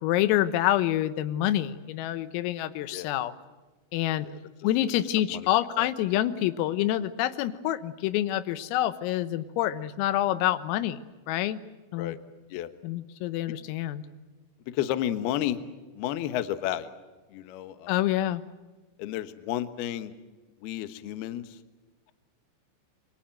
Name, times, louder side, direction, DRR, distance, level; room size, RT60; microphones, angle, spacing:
voice 1, 0.0-3.3 3.9-4.3 4.6-11.6 11.9-12.2 12.8-14.0 17.9-18.4, left 13 dB, 85° left, 13 dB, 3.8 m, -27 dB
voice 2, 14.7-15.6 16.0-16.9 17.3-18.0 19.0-20.1 20.6-21.6, left 12 dB, 70° left, 11 dB, 2.6 m, -32 dB
28.5 x 24.0 x 7.7 m, 1.2 s
omnidirectional pair, 5.9 m